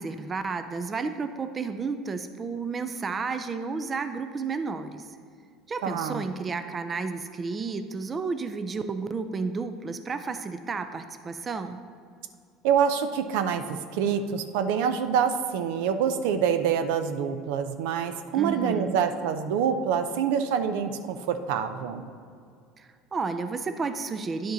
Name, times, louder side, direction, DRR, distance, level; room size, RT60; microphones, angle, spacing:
voice 1, 0.0-5.1 5.7-11.8 18.3-19.0 22.8-24.5, right 4 dB, 25° right, 9 dB, 0.4 m, -32 dB
voice 2, 5.8-6.2 12.6-22.0, right 7 dB, 80° right, 9 dB, 0.5 m, -26 dB
10.0 x 5.1 x 3.9 m, 2.2 s
supercardioid pair, 130°, 0 cm